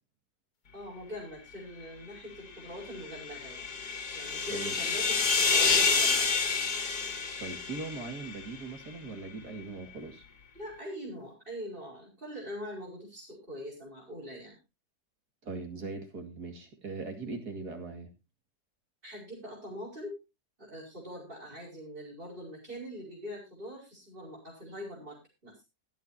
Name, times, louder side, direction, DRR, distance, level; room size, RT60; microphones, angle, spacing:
voice 1, 0.7-3.8 4.1-6.3 10.6-14.5 19.0-20.2 20.6-25.5, equal, 30° right, -6 dB, 5.5 m, -43 dB
sound 1, 2.9-8.4, left 4 dB, 80° left, 2.5 m, -28 dB
voice 2, 7.4-10.2 15.4-18.1, right 4 dB, 75° right, 4 dB, 2.9 m, -40 dB
23.5 x 8.1 x 2.8 m, 0.25 s
omnidirectional pair, 1.7 m